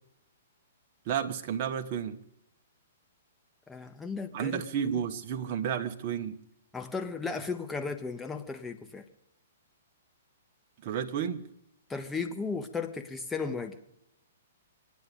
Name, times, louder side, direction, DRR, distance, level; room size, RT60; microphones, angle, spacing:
voice 1, 1.1-2.2 4.3-6.4 10.8-11.5, right 8 dB, 45° right, 1.2 m, -32 dB
voice 2, 3.7-4.6 6.7-9.0 11.9-13.8, left 4 dB, 10° left, 1.4 m, -35 dB
25.5 x 9.6 x 5.3 m
hypercardioid pair, 120°, 0 cm